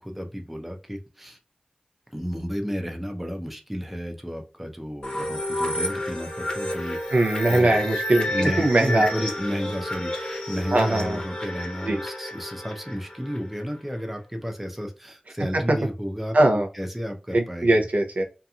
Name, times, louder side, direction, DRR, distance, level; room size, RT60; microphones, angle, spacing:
voice 1, 0.0-1.4 2.1-7.0 7.5-7.9 8.3-17.8, equal, 5° right, 4 dB, 0.6 m, -32 dB
sound 1, 5.0-13.6, left 1 dB, 35° left, 0.9 m, -30 dB
voice 2, 7.1-9.1 10.7-11.2 11.8-12.0 15.5-15.6 16.3-16.7 17.3-18.2, right 1 dB, 70° right, 3 dB, 0.6 m, -21 dB
2.8 x 2.5 x 2.3 m, 0.31 s
wide cardioid pair, 75°, 3 cm